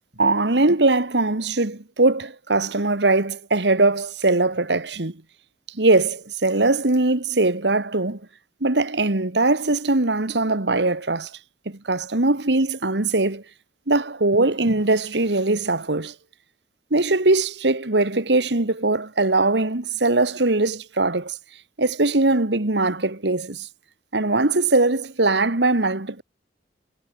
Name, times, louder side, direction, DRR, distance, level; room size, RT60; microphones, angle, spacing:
voice 1, 0.2-5.2 5.8-8.2 8.6-11.3 11.7-13.4 13.9-16.1 16.9-21.4 21.8-23.7 24.1-26.2, right 2 dB, 75° right, 1.9 m, -21 dB
head